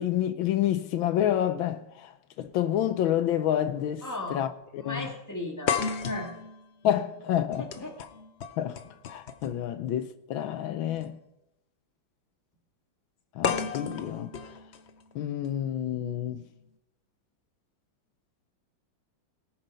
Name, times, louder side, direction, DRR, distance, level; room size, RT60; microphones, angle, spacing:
voice 1, 0.0-2.1 2.4-4.0 4.3-5.1 6.8-7.7 8.6-8.8 9.1-11.2 13.4-14.3 15.1-16.4, left 11 dB, 80° left, 1.5 m, -28 dB
sound 1, 2.5-2.6 3.7-3.9 4.2-4.3 5.7-9.7 10.9-11.0 13.4-15.5, left 6 dB, 55° left, 0.7 m, -34 dB
voice 2, 4.0-4.4 4.8-6.3 7.0-7.1 7.6-8.0, left 2 dB, 10° left, 2.1 m, -37 dB
18.5 x 7.1 x 5.6 m
omnidirectional pair, 2.1 m